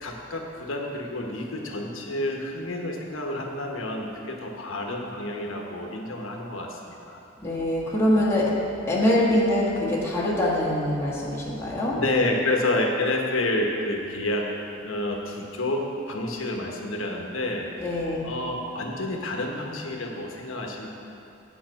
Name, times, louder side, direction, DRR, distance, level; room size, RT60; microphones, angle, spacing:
voice 1, 0.0-7.2 11.9-14.5 14.8-17.9 18.2-20.9, left 1 dB, 75° left, 1 dB, 1.2 m, -29 dB
voice 2, 7.4-8.5 8.9-11.9 17.8-18.3, left 1 dB, 15° left, -7 dB, 1.6 m, -24 dB
8.4 x 5.8 x 7.7 m, 2.9 s
head